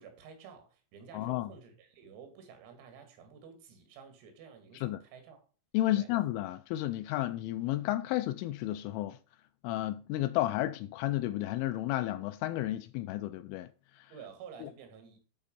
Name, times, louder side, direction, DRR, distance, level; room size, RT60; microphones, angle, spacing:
voice 1, 0.0-5.4 5.9-6.1 14.1-15.2, right 6 dB, 85° right, 4.7 m, -51 dB
voice 2, 1.1-1.5 4.8-5.0 5.7-9.2 9.6-13.7 14.6-14.7, left 15 dB, 85° left, 2.9 m, -32 dB
12.0 x 4.4 x 5.2 m
omnidirectional pair, 5.9 m